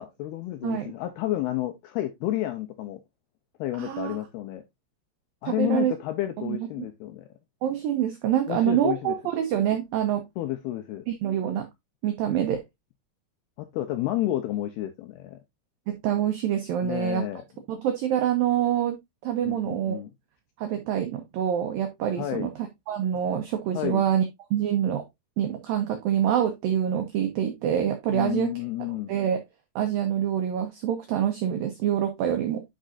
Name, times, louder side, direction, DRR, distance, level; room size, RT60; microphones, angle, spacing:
voice 1, 0.0-3.0 3.6-4.6 5.4-7.3 8.5-9.2 10.4-11.1 13.6-15.4 16.8-17.4 19.4-20.1 22.2-22.5 23.7-24.0 28.1-29.1, left 14 dB, 85° left, 2.3 m, -30 dB
voice 2, 3.8-4.2 5.5-5.9 6.4-6.6 7.6-10.2 11.1-11.7 12.0-12.6 15.9-17.2 17.7-19.0 19.2-20.0 20.6-22.5 22.9-24.2 24.5-25.0 25.4-28.5 29.1-29.4 29.8-32.6, right 10 dB, 85° right, 2.0 m, -26 dB
10.0 x 5.4 x 2.5 m
omnidirectional pair, 5.3 m